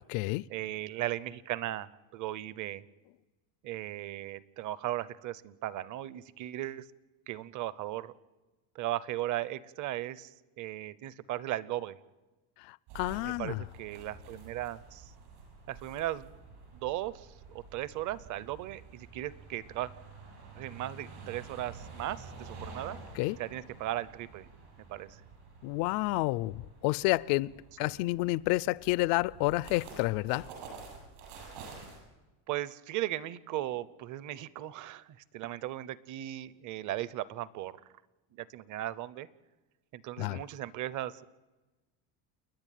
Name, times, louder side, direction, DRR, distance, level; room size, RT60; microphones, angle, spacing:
voice 1, 0.5-2.8 3.6-6.9 7.3-8.1 8.7-12.0 13.2-15.1 15.7-16.3 16.7-19.9 20.6-23.0 23.4-24.5 24.9-25.2 27.8-27.9 32.5-37.8 38.3-39.3 39.9-41.3, right 14 dB, 45° right, 0.8 m, -37 dB
voice 2, 12.6-13.6 23.2-23.4 25.6-30.5 40.2-40.4, left 21 dB, 75° left, 0.6 m, -30 dB
sound 1, 12.9-32.0, right 4 dB, 70° right, 7.5 m, -49 dB
29.5 x 10.5 x 9.2 m
cardioid pair, 170°, 43 cm